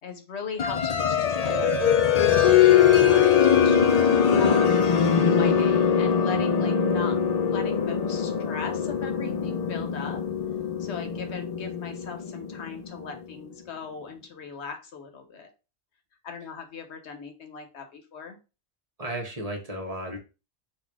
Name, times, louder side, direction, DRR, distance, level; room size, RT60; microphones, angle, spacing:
voice 1, 0.0-1.8 2.4-4.7 5.3-7.2 7.5-10.2 10.8-15.5 16.2-18.4, left 5 dB, 80° left, 5 dB, 1.2 m, -39 dB
sound 1, 0.6-13.1, left 8 dB, 45° left, 0.5 m, -22 dB
voice 2, 19.0-20.2, right 1 dB, 35° right, 2 dB, 1.0 m, -34 dB
4.1 x 2.5 x 4.7 m, 0.30 s
omnidirectional pair, 1.1 m